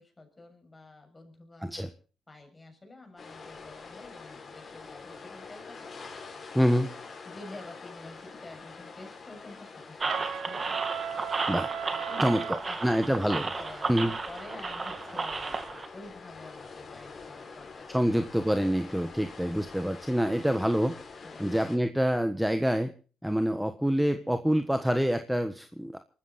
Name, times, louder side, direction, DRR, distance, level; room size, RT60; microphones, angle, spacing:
voice 1, 0.0-1.9 2.3-6.3 7.3-10.8 11.5-12.8 13.1-15.6 15.9-18.1 21.2-21.5, left 2 dB, 20° left, 4 dB, 7.1 m, -49 dB
sound 1, 3.2-21.8, left 4 dB, 40° left, 5.9 m, -46 dB
voice 2, 6.5-6.9 11.5-11.7 12.2-13.5 13.9-14.1 17.9-21.0 21.4-22.9 23.2-26.0, equal, 5° right, 8 dB, 1.4 m, -26 dB
sound 2, 10.0-15.9, right 4 dB, 30° right, 2.3 m, -33 dB
Trumpet, 10.1-12.6, right 8 dB, 65° right, 2.2 m, -36 dB
23.5 x 14.0 x 4.2 m, 0.39 s
cardioid pair, 90°, 0 cm